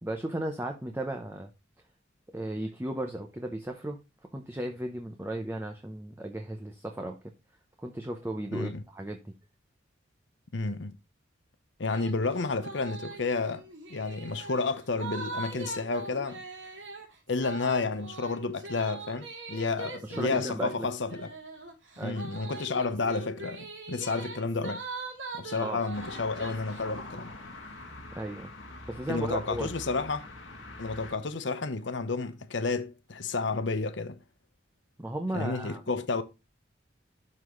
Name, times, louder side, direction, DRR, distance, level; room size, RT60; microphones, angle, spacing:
voice 1, 0.0-1.5 2.3-4.0 4.3-7.2 7.8-9.3 20.0-20.9 22.0-22.2 25.6-25.8 28.1-28.5 28.9-29.7 35.0-35.8, right 1 dB, 15° right, 0.7 m, -35 dB
voice 2, 8.5-8.8 10.5-10.9 11.8-13.6 13.9-16.4 17.3-21.3 22.0-24.8 25.3-27.3 29.1-30.3 30.8-34.2 35.3-36.2, left 3 dB, 70° left, 0.8 m, -31 dB
sound 1, 11.9-12.1 12.4-26.8, right 3 dB, 80° right, 2.9 m, -42 dB
sound 2, 25.9-31.1, left 2 dB, 90° left, 1.8 m, -44 dB
12.0 x 4.1 x 3.1 m
head